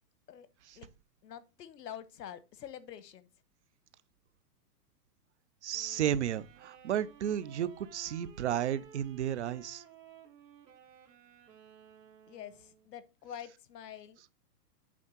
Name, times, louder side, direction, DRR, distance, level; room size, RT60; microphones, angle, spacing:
voice 1, 1.2-3.3 12.3-14.3, left 9 dB, 85° left, 1.2 m, -46 dB
voice 2, 5.6-9.8, right 10 dB, 45° right, 0.5 m, -33 dB
Wind instrument woodwind instrument, 5.7-12.9, right 8 dB, 85° right, 2.0 m, -56 dB
8.4 x 3.5 x 6.0 m
hypercardioid pair, 170°, 48 cm